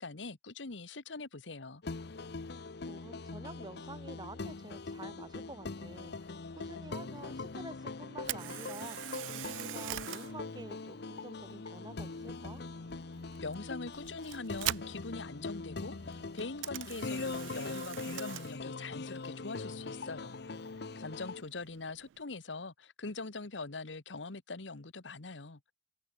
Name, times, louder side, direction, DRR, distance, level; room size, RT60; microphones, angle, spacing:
voice 1, 0.0-1.8 13.4-20.4 20.9-25.6, left 3 dB, 80° left, 1.4 m, -43 dB
sound 1, 1.8-21.4, left 3 dB, 65° left, 0.8 m, -42 dB
voice 2, 2.8-12.6, right 2 dB, 25° right, 1.5 m, -49 dB
Camera, 8.2-22.2, right 15 dB, 90° right, 0.3 m, -45 dB
head